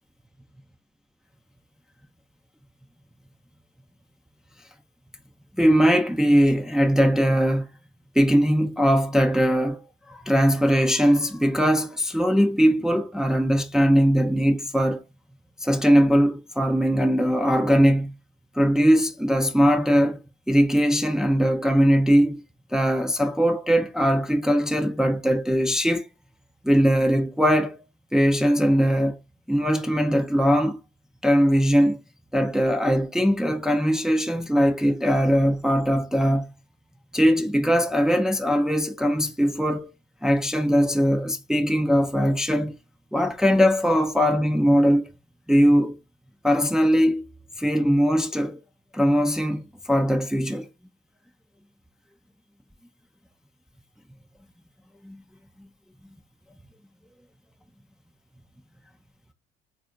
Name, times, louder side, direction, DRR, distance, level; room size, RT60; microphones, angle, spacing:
voice 1, 5.6-7.7 8.1-9.8 10.1-15.0 15.6-18.1 18.5-20.2 20.5-22.4 22.7-26.1 26.6-27.8 28.1-29.2 29.5-30.8 31.2-32.0 32.3-36.5 37.1-39.9 40.2-42.8 43.1-45.1 45.5-46.0 46.4-47.2 47.6-48.6 48.9-50.7 55.0-55.2, equal, ahead, 0.6 m, -20 dB
4.2 x 2.6 x 3.8 m
hypercardioid pair, 60°, 31 cm